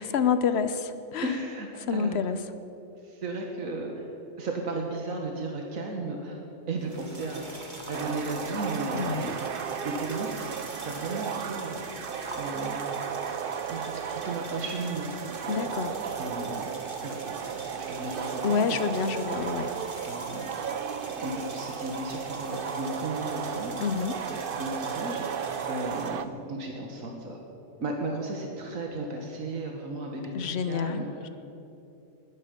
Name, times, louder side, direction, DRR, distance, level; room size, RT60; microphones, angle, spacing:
voice 1, 0.0-1.3 1.9-2.4 8.9-9.3 15.5-16.0 18.4-19.7 23.8-24.2 30.3-31.3, left 6 dB, 55° left, 11 dB, 1.0 m, -28 dB
voice 2, 1.2-2.2 3.0-4.1 4.4-6.4 6.7-9.2 9.8-10.4 10.8-11.9 12.4-12.8 13.7-15.1 16.2-16.7 17.0-17.2 17.7-18.8 20.0-20.5 21.1-23.7 24.3-27.4 27.8-31.1, right 2 dB, 85° right, 1 dB, 1.9 m, -35 dB
sound 1, 6.8-26.1, right 1 dB, 35° right, 2.1 m, -43 dB
sound 2, 7.9-26.3, right 7 dB, 55° right, 0.7 m, -34 dB
20.5 x 13.5 x 5.3 m, 3.0 s
omnidirectional pair, 1.4 m